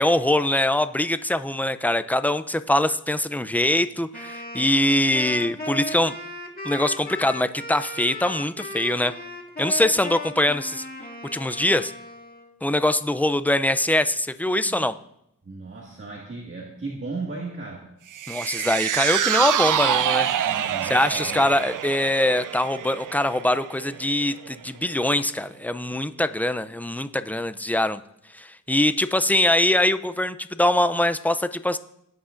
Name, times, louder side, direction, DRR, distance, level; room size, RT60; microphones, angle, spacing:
voice 1, 0.0-6.1 6.6-9.1 9.6-10.8 11.3-11.9 12.6-15.0 18.3-28.0 28.3-31.8, left 1 dB, 5° left, 12 dB, 0.4 m, -23 dB
Wind instrument woodwind instrument, 4.1-12.5, left 1 dB, 30° left, 1.9 m, -36 dB
voice 2, 15.5-18.0 20.4-21.5, right 3 dB, 40° right, -2 dB, 1.9 m, -36 dB
sound 1, 18.1-24.6 24.9-25.0, right 10 dB, 70° right, 0.5 m, -26 dB
18.5 x 9.6 x 2.6 m, 0.81 s
wide cardioid pair, 100°, 32 cm